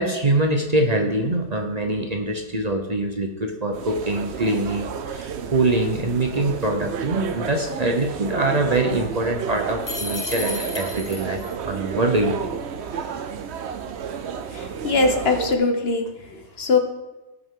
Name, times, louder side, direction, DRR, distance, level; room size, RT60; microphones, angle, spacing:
voice 1, 0.0-12.4 14.0-14.1, right 2 dB, 35° right, 3 dB, 0.9 m, -24 dB
sound 1, 3.7-15.6, right 7 dB, 65° right, 1.0 m, -31 dB
sound 2, 9.8-11.5, left 3 dB, 30° left, 0.3 m, -32 dB
voice 2, 14.5-16.1 16.6-16.8, left 3 dB, 55° left, 5 dB, 1.3 m, -21 dB
18.0 x 6.1 x 3.8 m, 1.1 s
omnidirectional pair, 1.3 m